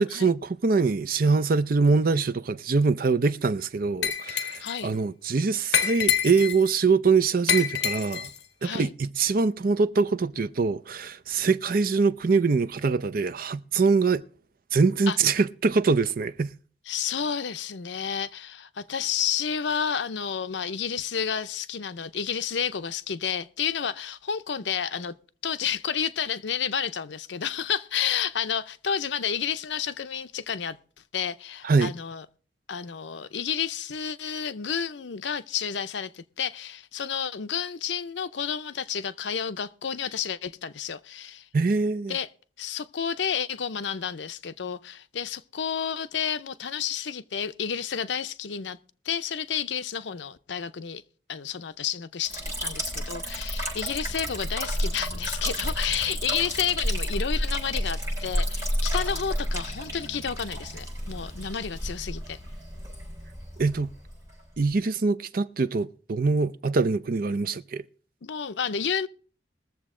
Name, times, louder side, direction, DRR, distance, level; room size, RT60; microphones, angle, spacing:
voice 1, 0.0-8.3 8.6-14.2 14.7-16.5 31.6-31.9 41.5-42.2 63.6-63.9 64.6-67.8, right 4 dB, 55° right, 0.5 m, -24 dB
Glass, 4.0-4.8 5.7-6.7 7.5-8.4, left 8 dB, 65° left, 1.4 m, -26 dB
voice 2, 4.6-4.9 8.6-8.9 15.1-15.2 16.9-25.1 25.4-30.8 31.1-32.3 32.7-41.5 42.1-42.3 42.6-48.8 49.0-51.0 51.3-62.4 68.2-69.1, left 7 dB, 85° left, 0.6 m, -30 dB
Liquid, 52.3-64.7, equal, 15° right, 6.2 m, -31 dB
21.5 x 7.2 x 3.7 m
head